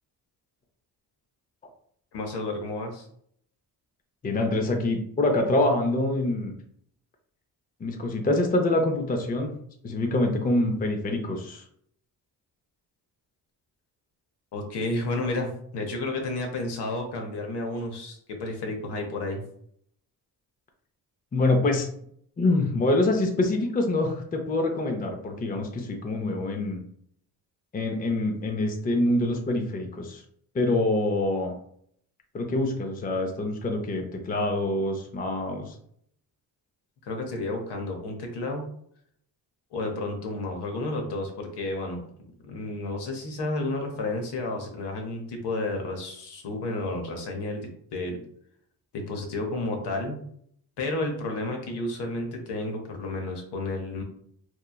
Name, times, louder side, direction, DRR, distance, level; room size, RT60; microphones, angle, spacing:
voice 1, 2.1-3.1 14.5-19.4 37.0-38.6 39.7-42.0 42.4-48.2 48.9-50.2 50.8-54.0, left 2 dB, 70° left, 3 dB, 0.8 m, -31 dB
voice 2, 4.2-6.5 7.8-9.5 9.8-11.6 21.3-21.9 22.4-26.8 27.7-30.2 30.5-31.5 32.3-35.8, left 2 dB, 20° left, 3 dB, 0.4 m, -25 dB
3.0 x 2.2 x 2.2 m, 0.67 s
cardioid pair, 70°, 42 cm